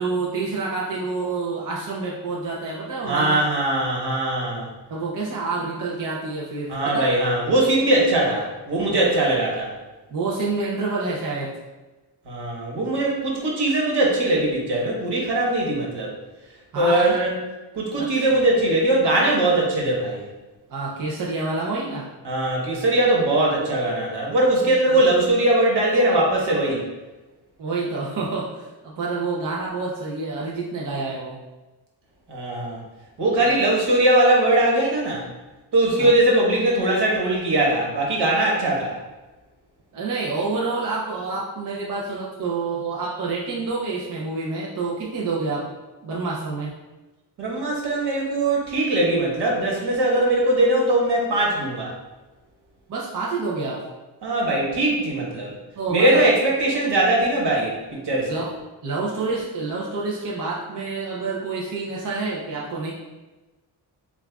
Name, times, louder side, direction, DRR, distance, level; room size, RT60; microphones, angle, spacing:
voice 1, 0.0-3.4 4.9-7.1 8.9-9.0 10.1-11.6 16.7-17.2 18.0-18.4 20.7-22.1 24.9-25.0 27.6-31.4 36.0-36.1 39.9-45.7 46.0-46.7 52.9-53.9 55.8-56.2 58.3-58.5 58.8-62.9, right 3 dB, 45° right, -4 dB, 0.6 m, -28 dB
voice 2, 3.0-4.7 6.7-9.7 12.2-16.1 16.7-17.3 17.7-20.2 22.2-26.8 32.3-32.8 33.2-35.2 35.7-39.0 47.4-51.9 54.2-55.5 55.9-57.8 58.0-58.4, right 1 dB, 70° right, -2 dB, 1.3 m, -20 dB
7.2 x 2.4 x 2.3 m, 1.1 s
wide cardioid pair, 175°, 42 cm